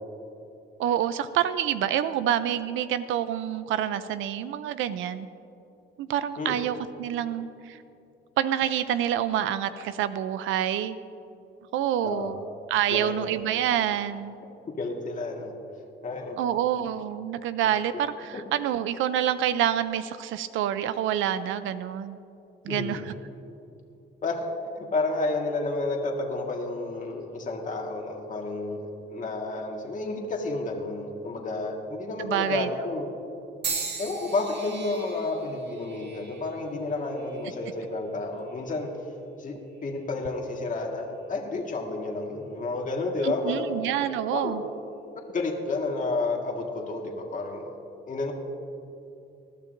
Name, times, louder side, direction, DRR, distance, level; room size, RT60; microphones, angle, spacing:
voice 1, 0.8-5.3 6.0-7.8 8.4-11.0 11.7-12.4 12.7-14.4 16.4-22.2 22.6-23.1 32.2-32.7 43.2-44.6, right 10 dB, 85° right, 13 dB, 0.5 m, -27 dB
voice 2, 12.0-12.4 12.9-13.1 14.8-15.5 16.0-16.4 17.6-17.7 22.7-23.1 24.2-24.4 24.7-33.1 34.0-39.6 39.8-43.7 44.3-44.6 45.3-47.7 48.1-48.3, left 3 dB, 40° left, 0 dB, 1.7 m, -31 dB
sound 1, 33.6-37.8 38.5-38.9 39.9-40.1, right 5 dB, 60° right, 1.9 m, -38 dB
20.0 x 12.0 x 2.6 m, 2.8 s
cardioid pair, 90°, 20 cm